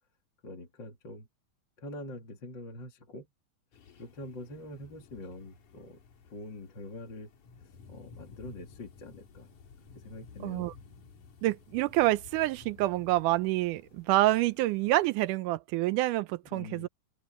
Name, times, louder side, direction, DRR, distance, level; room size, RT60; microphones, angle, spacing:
voice 1, 0.4-1.3 1.8-3.3 4.0-6.0 6.3-7.3 7.9-9.5 9.9-10.7 16.5-16.9, left 2 dB, 35° left, 3.1 m, -44 dB
sound 1, 3.7-15.1, left 5 dB, 70° left, 3.8 m, -54 dB
voice 2, 10.4-10.7 11.4-16.9, right 17 dB, 85° right, 2.1 m, -27 dB
open air
omnidirectional pair, 3.7 m